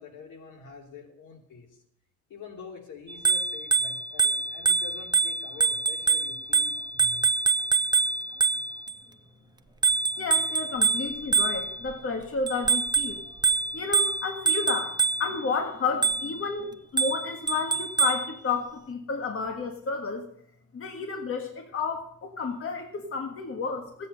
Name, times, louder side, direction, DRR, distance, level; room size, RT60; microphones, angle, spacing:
voice 1, 0.0-1.7 2.3-7.4, left 4 dB, 85° left, 2 dB, 2.9 m, -46 dB
Bicycle bell, 3.1-8.9 9.8-11.9 12.5-15.4 16.0-16.4 17.0-18.3, right 4 dB, 15° right, 0.4 m, -25 dB
voice 2, 10.2-13.2 13.7-20.2 20.7-24.1, left 4 dB, 45° left, 4 dB, 1.7 m, -31 dB
15.5 x 8.5 x 5.4 m, 0.70 s
cardioid pair, 125°, 30 cm